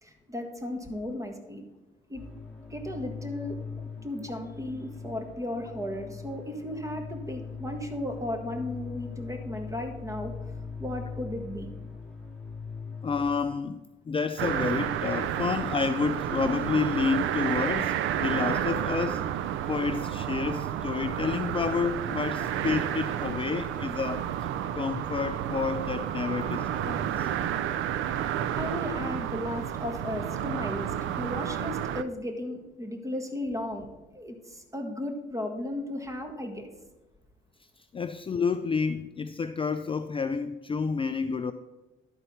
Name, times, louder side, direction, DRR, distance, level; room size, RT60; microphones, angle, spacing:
voice 1, 0.0-1.6 2.1-2.2 2.7-10.3 10.8-11.7 28.5-33.9 34.1-36.7, left 1 dB, 15° right, 4 dB, 1.6 m, -35 dB
sound 1, 2.1-13.4, left 5 dB, 5° left, 1.9 m, -40 dB
voice 2, 13.0-13.8 14.1-19.2 19.7-24.3 24.7-27.3 37.9-41.5, left 5 dB, 25° left, 9 dB, 0.4 m, -29 dB
sound 2, 14.4-32.0, right 10 dB, 80° right, 0.5 m, -31 dB
11.5 x 4.5 x 5.6 m, 1.1 s
cardioid pair, 90°, 20 cm